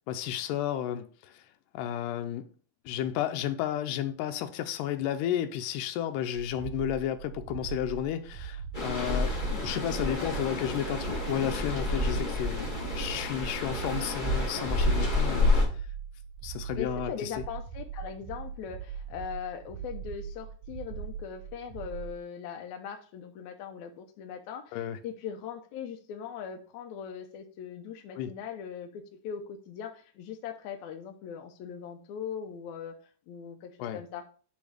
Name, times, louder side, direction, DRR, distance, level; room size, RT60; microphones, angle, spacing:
voice 1, 0.1-1.5 1.7-2.5 2.9-12.7 12.9-15.5 16.4-17.4 24.7-25.0 28.2-28.3 33.8-34.0, left 10 dB, 90° left, 2.2 m, -32 dB
sound 1, 6.3-22.2, right 8 dB, 80° right, 2.1 m, -41 dB
sound 2, 8.7-15.6, left 2 dB, 30° left, 0.8 m, -29 dB
voice 2, 9.5-9.9 10.2-10.8 16.7-24.8 25.0-33.0 33.3-34.2, left 7 dB, 70° left, 1.9 m, -40 dB
8.3 x 3.5 x 4.9 m
omnidirectional pair, 3.8 m